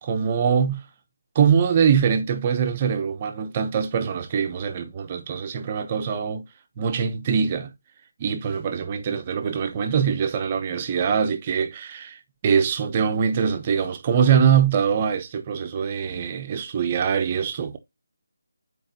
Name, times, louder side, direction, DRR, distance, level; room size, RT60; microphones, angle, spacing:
voice 1, 0.0-0.8 1.3-6.4 6.8-7.7 8.2-17.8, right 7 dB, 25° right, 0.9 m, -23 dB
8.8 x 4.7 x 2.9 m
figure-of-eight pair, 165°, 0 cm